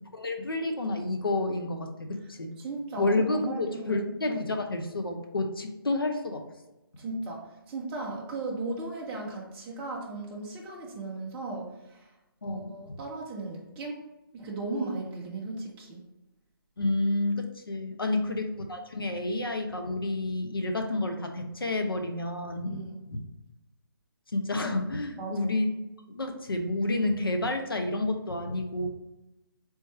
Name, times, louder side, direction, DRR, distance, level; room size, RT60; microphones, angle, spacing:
voice 1, 0.1-2.5 3.0-6.4 12.4-13.0 16.8-22.8 23.1-23.2 24.3-25.7 26.1-28.9, left 2 dB, 70° left, 4 dB, 0.8 m, -30 dB
voice 2, 2.6-4.1 7.0-12.1 12.4-14.0 14.3-16.0 18.0-18.2 22.7-23.0 25.2-25.5, right 2 dB, 10° right, -1 dB, 0.5 m, -36 dB
3.5 x 3.2 x 4.1 m, 1.0 s
figure-of-eight pair, 145°, 12 cm